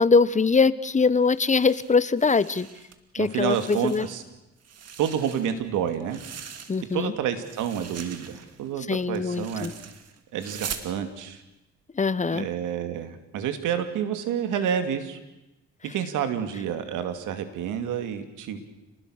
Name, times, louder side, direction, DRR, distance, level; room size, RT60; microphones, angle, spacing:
voice 1, 0.0-2.7 3.1-4.1 6.7-7.1 8.9-9.7 12.0-12.5, left 4 dB, 25° left, 16 dB, 1.0 m, -22 dB
sound 1, 1.3-3.0 3.3-4.3 4.6-7.1 7.4-10.9, right 7 dB, 55° right, 2.4 m, -42 dB
voice 2, 3.2-4.2 5.0-6.2 6.9-9.7 10.3-11.4 12.3-15.2 15.9-18.6, right 8 dB, 90° right, 8 dB, 2.7 m, -29 dB
28.5 x 20.0 x 6.5 m, 0.97 s
cardioid pair, 90°, 30 cm